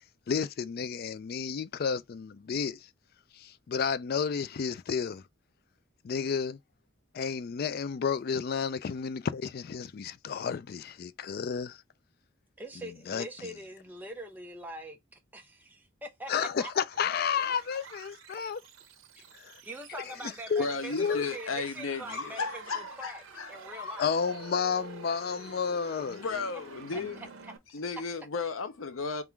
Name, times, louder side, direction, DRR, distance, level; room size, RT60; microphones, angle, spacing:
voice 1, 0.3-2.8 3.3-5.2 6.0-6.6 7.1-11.8 13.1-13.3 16.3-18.6 19.4-19.6 20.5-20.6 20.9-21.2 24.0-26.2, left 6 dB, 50° left, 0.3 m, -31 dB
voice 2, 12.6-16.7 19.2-19.3 19.6-23.2 23.5-24.1 26.9-27.0 27.4-27.5, right 1 dB, 10° right, 0.8 m, -43 dB
sound 1, 16.9-27.6, right 5 dB, 85° right, 0.8 m, -48 dB
voice 3, 20.6-24.0 25.1-25.2 25.7-27.2 27.7-29.2, left 4 dB, 90° left, 0.7 m, -35 dB
3.6 x 2.5 x 4.5 m
head